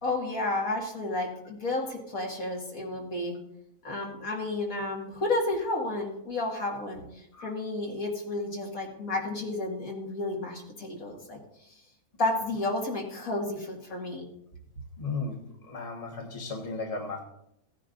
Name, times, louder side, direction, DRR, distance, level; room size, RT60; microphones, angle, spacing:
voice 1, 0.0-3.4 3.8-11.4 12.2-14.3, left 2 dB, 65° left, -1 dB, 2.5 m, -31 dB
voice 2, 15.0-15.4 15.6-17.2, left 3 dB, 25° left, 0 dB, 1.5 m, -35 dB
17.0 x 9.8 x 2.6 m, 0.78 s
omnidirectional pair, 1.6 m